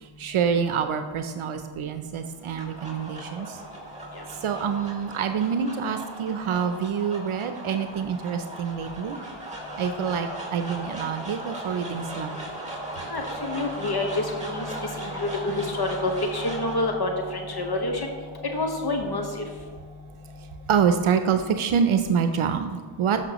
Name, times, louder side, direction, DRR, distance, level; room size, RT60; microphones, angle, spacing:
voice 1, 0.2-3.6 4.4-9.2 9.8-12.3 20.7-23.2, right 7 dB, 75° right, 7 dB, 0.7 m, -26 dB
sound 1, 2.2-20.5, right 1 dB, 15° right, 2.6 m, -38 dB
voice 2, 13.0-18.1 18.5-19.4, left 2 dB, 50° left, 3 dB, 1.3 m, -28 dB
12.0 x 5.8 x 3.0 m, 1.5 s
cardioid pair, 65°, 50 cm